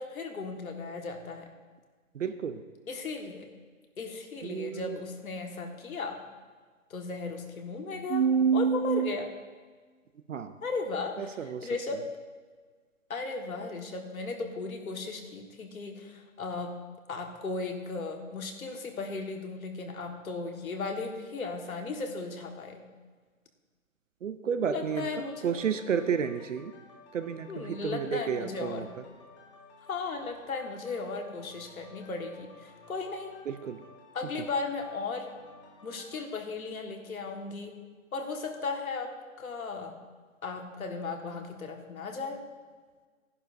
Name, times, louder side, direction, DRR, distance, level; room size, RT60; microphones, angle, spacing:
voice 1, 0.0-1.5 2.9-3.5 4.0-6.2 6.9-8.2 8.5-9.3 10.6-11.3 11.6-12.0 13.1-16.8 17.1-22.9 24.7-25.6 27.5-28.9 29.9-33.3 34.1-35.3 35.8-37.7 38.1-40.0 40.4-42.4, left 4 dB, 85° left, 3 dB, 1.8 m, -36 dB
voice 2, 2.1-2.6 4.4-5.0 8.1-9.2 10.3-10.5 11.2-11.7 24.2-26.7 27.1-28.9 33.5-33.8, right 7 dB, 65° right, 10 dB, 0.7 m, -30 dB
sound 1, 24.8-36.2, left 3 dB, 20° left, 1.0 m, -55 dB
13.5 x 11.0 x 2.7 m, 1.5 s
hypercardioid pair, 175°, 41 cm